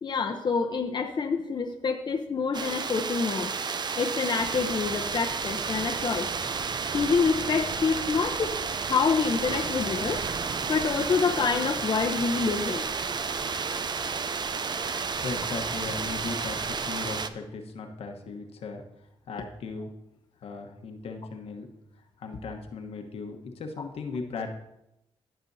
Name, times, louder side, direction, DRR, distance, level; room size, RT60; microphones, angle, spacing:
voice 1, 0.0-3.5 4.0-6.3 6.9-8.6 8.8-10.2 10.7-12.9, left 5 dB, 45° left, 3 dB, 0.8 m, -27 dB
sound 1, 2.5-17.3, right 5 dB, 45° right, 0.6 m, -31 dB
voice 2, 14.9-18.8 19.3-19.9 20.4-21.7 22.2-24.5, left 4 dB, 70° left, 3 dB, 1.2 m, -37 dB
15.0 x 6.2 x 2.7 m, 0.87 s
cardioid pair, 65°, 10 cm